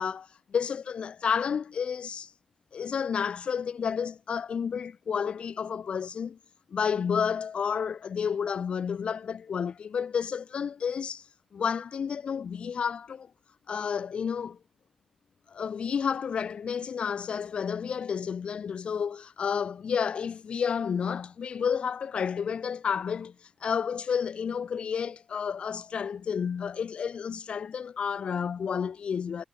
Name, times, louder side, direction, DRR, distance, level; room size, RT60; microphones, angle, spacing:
voice 1, 0.0-2.3 2.7-6.4 6.7-11.3 11.5-13.3 13.7-14.6 15.5-29.4, left 7 dB, 60° left, 0.5 m, -31 dB
cardioid pair, 85°, 2 cm